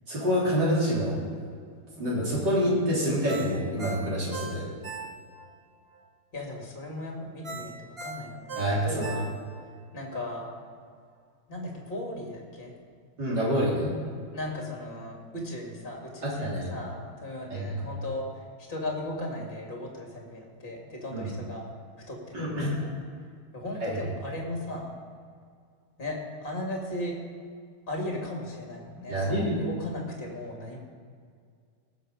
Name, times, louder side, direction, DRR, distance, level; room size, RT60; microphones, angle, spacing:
voice 1, 0.1-1.2 2.0-4.6 8.6-9.0 13.2-13.9 16.4-16.7 17.5-17.8 21.1-21.3 22.3-22.8 23.8-24.0 29.1-29.6, equal, 50° right, -7 dB, 4.2 m, -27 dB
Ringtone, 3.3-5.5 5.9-6.0 7.4-9.7 10.1-10.2, right 3 dB, 30° right, 1.6 m, -39 dB
voice 2, 6.3-9.3 9.9-10.5 11.5-12.7 14.3-18.2 18.7-21.6 22.1-23.0 23.5-25.0 26.0-27.2 27.9-30.8, left 1 dB, 25° left, -1 dB, 2.4 m, -37 dB
18.5 x 7.1 x 5.1 m, 2.1 s
omnidirectional pair, 2.4 m